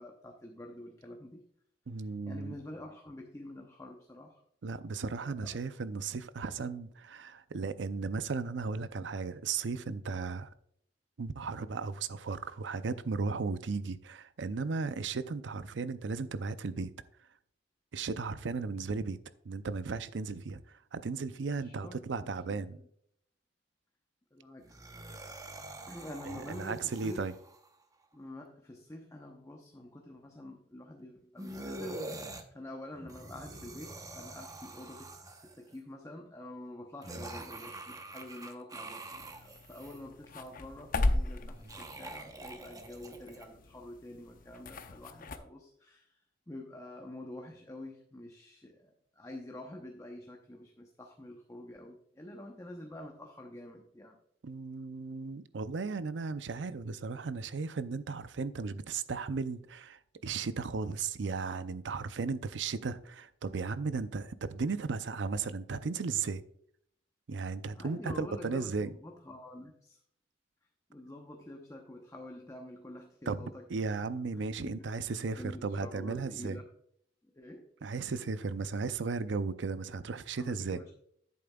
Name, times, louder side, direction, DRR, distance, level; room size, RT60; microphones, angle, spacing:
voice 1, 0.0-1.4 2.0-4.4 5.2-5.6 21.5-22.1 22.4-22.6 24.3-25.3 25.9-27.3 28.1-35.1 35.4-46.2 46.5-54.2 67.7-70.0 70.9-73.6 74.3-76.7 77.2-77.7 80.4-80.9, left 1 dB, 15° left, 0.8 m, -47 dB
voice 2, 1.9-2.5 4.6-10.5 11.2-16.9 17.9-19.2 19.4-22.8 26.5-27.3 54.4-66.4 67.3-68.9 73.3-76.6 77.8-80.8, right 4 dB, 75° right, 0.5 m, -35 dB
sound 1, 24.6-27.7 31.4-32.4 32.9-35.7 37.0-40.0 41.5-43.5, right 2 dB, 20° right, 0.9 m, -45 dB
sound 2, 39.1-45.4, left 2 dB, 50° left, 0.7 m, -37 dB
10.5 x 8.5 x 2.3 m
head